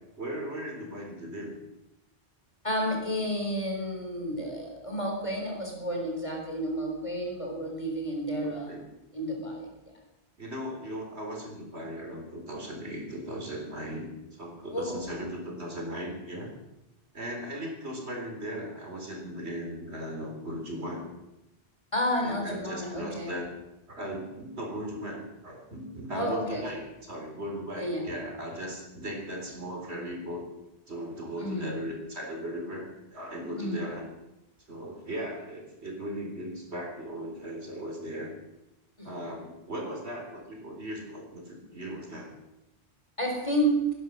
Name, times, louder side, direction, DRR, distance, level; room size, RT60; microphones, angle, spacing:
voice 1, 0.2-1.5 8.4-8.8 10.4-16.5 17.1-21.0 22.2-23.5 23.9-30.4 30.9-34.0 34.7-38.3 39.0-42.3, equal, 80° right, 1 dB, 4.1 m, -37 dB
voice 2, 2.6-8.8 9.1-9.9 14.7-15.0 21.9-23.4 26.1-26.8 27.7-28.1 31.4-31.8 33.5-33.9 39.0-39.2 43.2-43.9, equal, 30° left, 0 dB, 4.2 m, -31 dB
18.0 x 11.0 x 6.3 m, 0.92 s
omnidirectional pair, 1.1 m